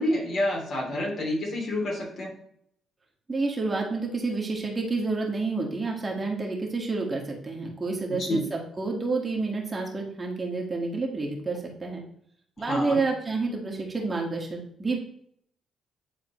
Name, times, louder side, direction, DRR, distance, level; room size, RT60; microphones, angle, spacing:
voice 1, 0.0-2.3 8.2-8.4 12.6-13.0, left 1 dB, 55° left, -3 dB, 3.0 m, -28 dB
voice 2, 3.3-12.0 12.6-15.0, right 3 dB, 25° right, -1 dB, 1.7 m, -29 dB
9.7 x 4.0 x 3.1 m, 0.68 s
cardioid pair, 90°, 0 cm